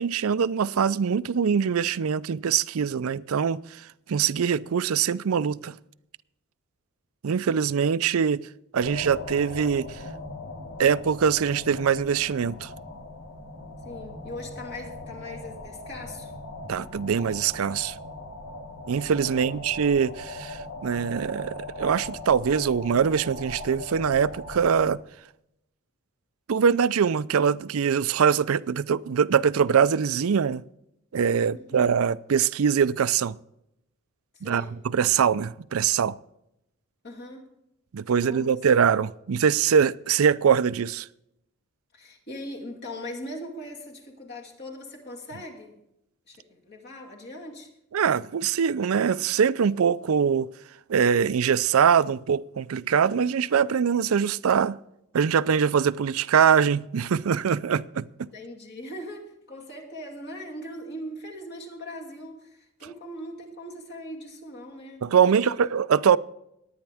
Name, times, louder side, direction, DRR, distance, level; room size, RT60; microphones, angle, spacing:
voice 1, 0.0-3.6 4.1-5.7 7.2-8.5 8.7-10.0 10.8-12.7 16.7-17.9 18.9-25.0 26.5-30.6 31.1-33.4 34.4-36.2 37.9-41.1 47.9-50.5 50.9-54.8 55.1-58.3 65.0-66.2, right 7 dB, 85° right, 0.4 m, -23 dB
sound 1, 8.8-24.9, left 2 dB, 70° left, 1.9 m, -39 dB
voice 2, 13.8-16.3 19.3-19.6 31.5-31.8 34.3-34.8 37.0-37.5 38.1-38.6 41.9-45.8 46.3-47.7 58.3-65.5, left 1 dB, 50° left, 2.6 m, -40 dB
19.5 x 9.5 x 3.5 m
head